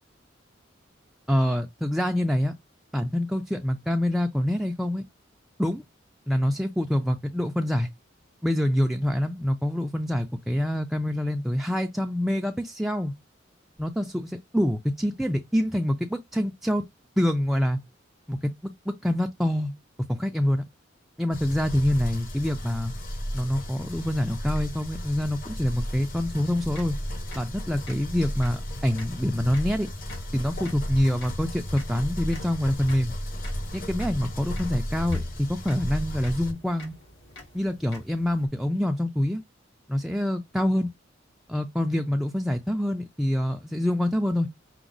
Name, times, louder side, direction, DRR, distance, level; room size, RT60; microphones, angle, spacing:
voice 1, 1.3-2.5 2.9-5.1 5.6-5.8 6.3-7.9 8.4-13.1 13.8-16.9 17.2-17.8 18.3-19.7 20.1-20.6 21.2-22.9 23.3-27.0 27.3-29.9 30.3-33.1 33.7-36.9 37.5-39.4 39.9-40.9 41.5-44.5, left 1 dB, ahead, 0.4 m, -26 dB
sound 1, 21.3-36.5, equal, 50° left, 1.0 m, -34 dB
sound 2, 26.3-38.5, left 2 dB, 70° left, 1.5 m, -49 dB
5.9 x 2.0 x 3.9 m
head